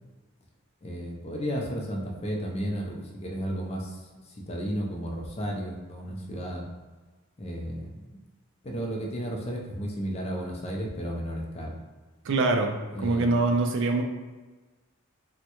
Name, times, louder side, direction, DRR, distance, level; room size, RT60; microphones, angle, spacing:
voice 1, 0.8-4.0 4.3-6.7 7.4-8.0 8.6-11.8 12.9-13.4, equal, 30° left, 0 dB, 0.4 m, -33 dB
voice 2, 12.2-14.0, right 2 dB, 60° right, 4 dB, 0.4 m, -24 dB
3.4 x 2.1 x 2.9 m, 1.3 s
head